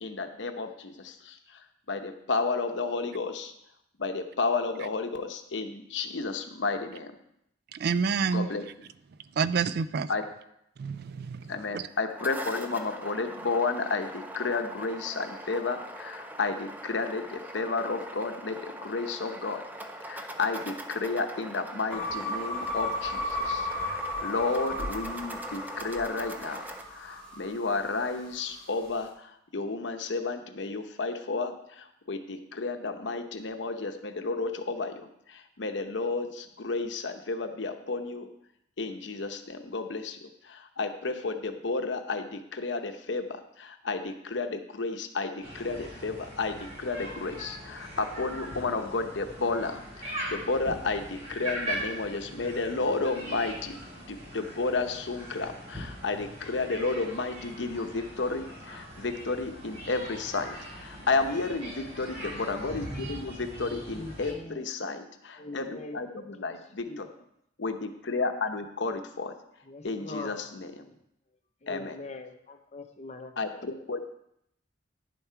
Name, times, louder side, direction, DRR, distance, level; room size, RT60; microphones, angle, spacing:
voice 1, 0.0-1.6 1.9-3.5 4.0-7.1 8.3-8.6 10.1-10.2 11.5-19.6 20.1-38.3 38.8-53.8 54.1-65.7 65.9-67.1 67.6-69.3 69.8-70.7 71.7-72.0 73.4-74.0, left 3 dB, 75° left, 7 dB, 0.9 m, -32 dB
voice 2, 7.7-8.5 9.4-10.1 10.8-11.9, right 5 dB, 60° right, 16 dB, 0.4 m, -28 dB
sound 1, 11.9-26.8, right 1 dB, 10° right, 0.7 m, -42 dB
sound 2, 21.9-28.3, left 1 dB, 5° left, 2.1 m, -34 dB
sound 3, 45.4-64.3, equal, 35° right, 4.7 m, -41 dB
voice 3, 63.9-64.7 65.3-66.0 66.4-66.5 66.8-67.0 69.6-70.4 70.8-71.0 71.6-73.8, left 2 dB, 40° left, 5 dB, 0.9 m, -42 dB
10.5 x 7.1 x 4.6 m, 0.76 s
head